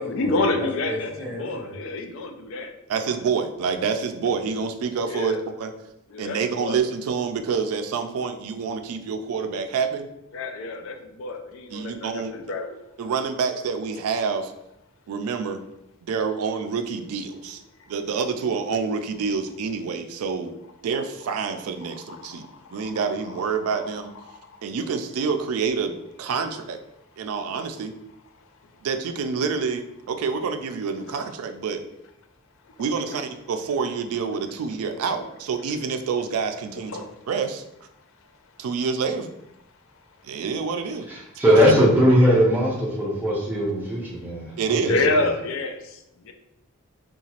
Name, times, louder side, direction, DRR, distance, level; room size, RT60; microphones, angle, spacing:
voice 1, 0.0-2.8 5.1-5.5 6.1-6.8 10.3-12.7 21.5-21.6 21.8-22.9 23.6-23.9 24.3-24.6 31.1-31.2 32.7-32.8 36.9-37.2 44.8-46.3, left 3 dB, 60° left, 5 dB, 0.4 m, -29 dB
voice 2, 0.6-1.7 41.1-45.3, equal, 10° right, -5 dB, 0.6 m, -21 dB
voice 3, 2.9-5.7 6.2-10.1 11.7-12.3 13.0-14.5 15.1-15.6 16.0-17.6 17.9-20.6 20.8-22.4 22.7-24.1 24.6-26.8 27.2-27.9 28.8-31.8 32.8-37.9 38.6-39.3 40.2-41.1 44.6-44.9, right 5 dB, 85° right, 7 dB, 0.3 m, -27 dB
2.8 x 2.3 x 2.8 m, 0.85 s
head